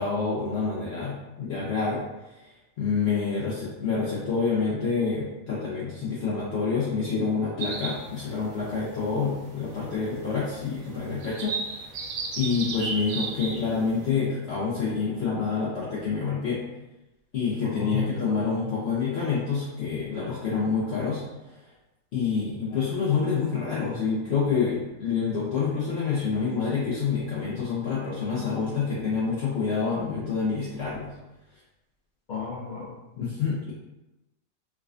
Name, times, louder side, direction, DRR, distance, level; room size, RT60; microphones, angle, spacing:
voice 1, 0.0-2.0 2.3-2.5 2.8-11.9 12.4-16.6 17.3-21.2 21.5-21.6 22.1-31.1 33.2-33.7, left 5 dB, 55° left, -7 dB, 0.9 m, -27 dB
sound 1, 7.6-14.1, right 4 dB, 70° right, 0.9 m, -36 dB
voice 2, 17.6-18.5 32.3-32.9, left 7 dB, 80° left, -6 dB, 0.4 m, -32 dB
4.8 x 2.2 x 2.4 m, 0.99 s
omnidirectional pair, 1.5 m